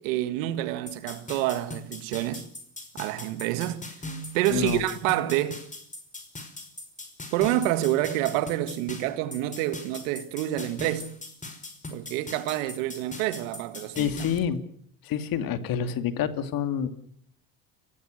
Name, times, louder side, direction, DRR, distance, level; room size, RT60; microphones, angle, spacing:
voice 1, 0.0-2.5 2.9-3.9 4.3-5.7 7.3-11.1 11.9-14.1, right 14 dB, 85° right, 1.8 m, -28 dB
sound 1, 0.9-14.4, left 1 dB, 20° left, 5.3 m, -40 dB
voice 2, 4.5-4.8 13.9-14.6 15.0-16.9, left 8 dB, 60° left, 2.6 m, -27 dB
30.0 x 17.5 x 6.5 m
supercardioid pair, 95°, 39 cm